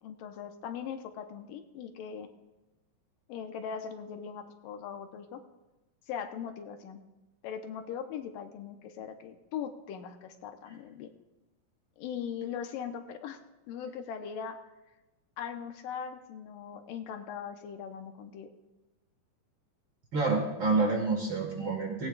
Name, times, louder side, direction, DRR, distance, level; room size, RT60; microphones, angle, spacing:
voice 1, 0.0-2.3 3.3-5.4 6.1-7.0 7.4-11.1 12.0-13.4 13.7-14.6 15.4-18.5, left 7 dB, 85° left, 6 dB, 2.5 m, -40 dB
voice 2, 20.1-22.1, right 3 dB, 45° right, 1 dB, 1.9 m, -28 dB
18.0 x 17.0 x 2.4 m, 1.1 s
omnidirectional pair, 3.9 m